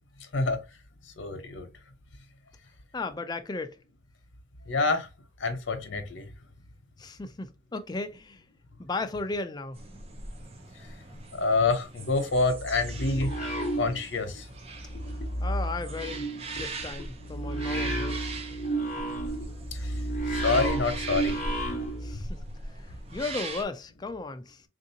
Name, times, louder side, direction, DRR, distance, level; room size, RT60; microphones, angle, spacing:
voice 1, 1.2-1.7 4.7-5.1 5.4-6.3 11.1-13.3 13.7-14.5 19.7-20.0 20.3-21.4 22.1-22.2, left 3 dB, 80° left, 0.8 m, -27 dB
voice 2, 2.9-3.8 7.0-8.4 8.8-9.8 15.1-16.3 16.5-18.3 22.0-22.4 22.7-24.6, left 3 dB, 20° left, 0.3 m, -36 dB
sound 1, 9.7-23.6, right 2 dB, 30° right, 0.6 m, -40 dB
sound 2, 12.7-14.4 14.7-22.2, right 1 dB, 40° left, 0.8 m, -32 dB
3.6 x 2.6 x 2.7 m
head